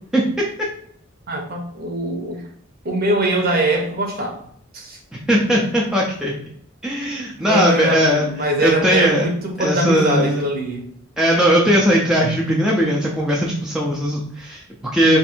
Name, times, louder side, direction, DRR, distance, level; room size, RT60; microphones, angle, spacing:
voice 1, 1.3-2.4 2.8-4.4 4.7-5.0 7.4-10.9, right 1 dB, 45° right, 1 dB, 0.8 m, -22 dB
voice 2, 5.1-6.3 6.8-8.3 8.6-9.2 9.6-10.4 11.2-15.2, equal, 5° right, -4 dB, 0.5 m, -18 dB
3.3 x 2.6 x 4.2 m, 0.62 s
head